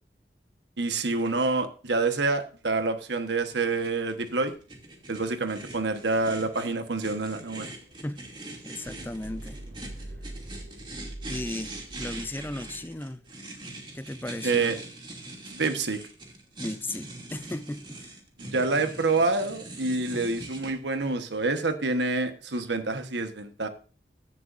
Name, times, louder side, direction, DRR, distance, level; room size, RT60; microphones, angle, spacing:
voice 1, 0.8-4.5 5.1-7.7 14.4-14.8 15.5-16.0 18.4-23.7, right 3 dB, 85° right, 1.3 m, -27 dB
sound 1, 3.5-20.7, right 2 dB, 30° right, 2.7 m, -42 dB
sound 2, 7.7-14.0, right 1 dB, 60° right, 2.7 m, -44 dB
voice 2, 8.6-9.6 11.3-13.2 13.9-14.7 16.6-18.2, left 1 dB, 10° left, 0.5 m, -36 dB
16.5 x 11.0 x 2.6 m
head